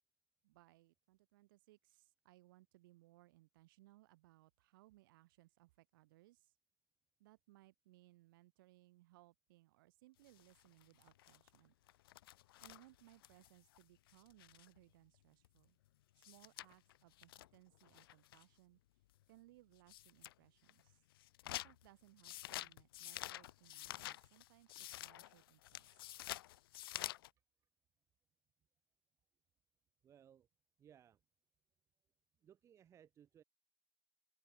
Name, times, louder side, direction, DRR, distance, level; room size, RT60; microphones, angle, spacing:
voice 1, 0.4-6.5 7.2-11.7 12.6-15.8 16.2-18.8 19.3-21.0 21.4-26.0, right 19 dB, 65° right, 7.3 m, -66 dB
sound 1, 10.3-14.8 15.1-15.2 15.4-15.5 15.9-16.0 16.2-18.5 19.1-19.2 19.8-20.3 20.7-27.3, left 15 dB, 75° left, 0.5 m, -50 dB
voice 2, 30.0-30.5 30.8-31.2 32.4-33.4, right 9 dB, 25° right, 1.2 m, -64 dB
open air
supercardioid pair, 130°, 12 cm